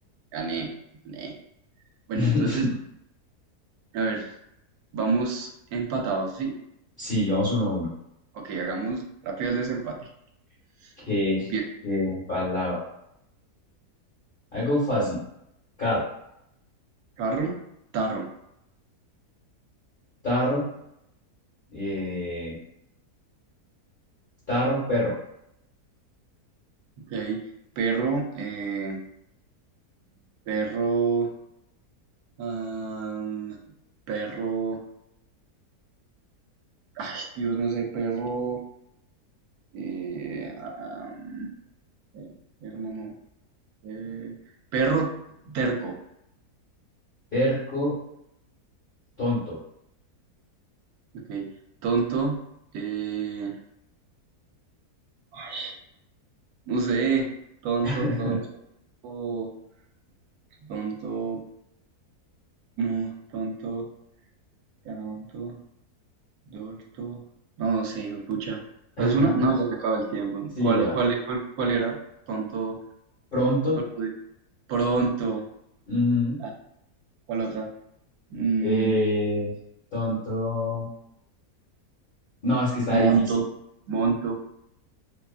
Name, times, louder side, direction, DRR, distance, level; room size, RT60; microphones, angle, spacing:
voice 1, 0.3-0.7 1.0-1.3 2.1-2.7 3.9-4.3 4.9-6.6 8.3-10.1 10.8-10.9 11.5-11.6 17.2-17.6 17.9-18.3 27.0-27.4 27.8-29.0 30.5-31.3 32.4-33.6 34.1-34.8 37.0-38.6 39.7-41.5 42.1-42.3 42.6-43.1 43.8-44.4 44.7-45.2 45.5-45.9 51.1-51.5 51.8-52.4 52.7-53.6 55.3-55.7 56.7-57.3 57.6-58.4 59.0-59.5 60.6-61.4 62.8-63.9 64.8-65.6 66.5-67.2 67.6-68.6 69.0-72.0 72.3-72.8 73.9-74.1 74.7-75.4 76.4-76.5 77.3-77.7 78.3-79.0 82.9-83.4 83.9-84.3, right 4 dB, 75° right, 2 dB, 1.0 m, -28 dB
voice 2, 2.1-2.7 7.0-7.9 11.1-11.5 11.8-12.8 14.5-15.2 15.8-16.0 20.2-20.7 21.7-22.5 24.5-25.1 47.3-48.0 49.2-49.6 57.8-58.4 69.0-69.3 70.6-70.9 73.3-73.8 75.9-76.4 78.6-79.5 79.9-80.9 82.4-83.1, left 1 dB, 40° left, -9 dB, 0.9 m, -25 dB
2.7 x 2.3 x 2.3 m, 0.79 s
omnidirectional pair, 1.7 m